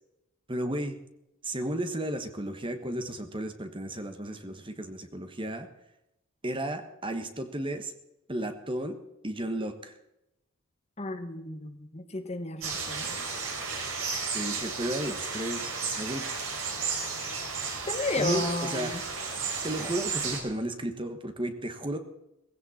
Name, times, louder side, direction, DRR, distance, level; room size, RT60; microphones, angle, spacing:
voice 1, 0.5-1.0 1.4-5.7 6.4-7.9 8.3-9.0 9.2-10.0 14.3-16.3 18.2-18.9 19.6-22.0, right 1 dB, 25° right, 8 dB, 1.4 m, -33 dB
voice 2, 11.0-13.2 17.9-19.0, left 2 dB, 30° left, 7 dB, 1.4 m, -33 dB
sound 1, 12.6-20.4, right 5 dB, 70° right, 4.9 m, -33 dB
18.0 x 16.5 x 4.3 m, 0.87 s
head